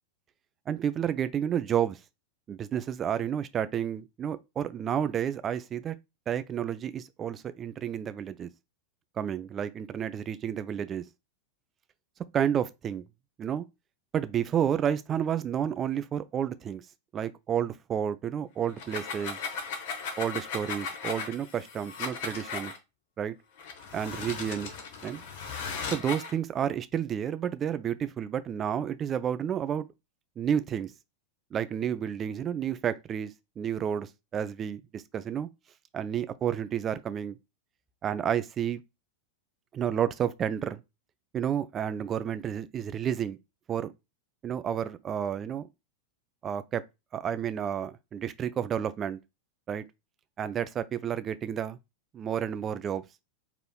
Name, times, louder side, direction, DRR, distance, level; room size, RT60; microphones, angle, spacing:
voice 1, 0.7-2.0 2.5-5.9 6.3-8.5 9.2-11.0 12.3-13.0 13.4-13.6 14.1-16.8 17.1-19.4 20.2-22.7 23.2-23.3 23.9-24.7 25.0-25.2 25.9-29.9 30.4-30.9 31.5-35.5 35.9-37.4 38.0-38.8 39.7-40.8 41.3-43.4 43.7-43.9 44.4-45.7 46.4-46.8 47.1-49.2 49.7-49.8 50.4-51.8 52.1-53.0, right 9 dB, 25° right, 0.4 m, -31 dB
sound 1, 18.7-22.8 23.6-26.3, left 5 dB, 50° left, 0.9 m, -37 dB
4.7 x 3.0 x 2.3 m
figure-of-eight pair, 90°, 0 cm